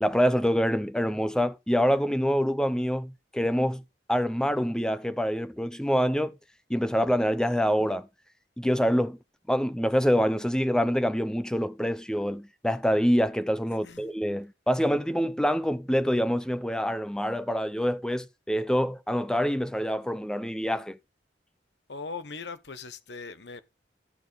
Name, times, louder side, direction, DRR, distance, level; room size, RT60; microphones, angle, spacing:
voice 1, 0.0-3.8 4.1-6.4 6.7-8.1 8.6-9.2 9.5-21.0, equal, 5° left, 0.6 m, -26 dB
voice 2, 13.7-14.1 21.9-23.6, left 4 dB, 80° left, 1.1 m, -40 dB
12.5 x 6.9 x 4.0 m
head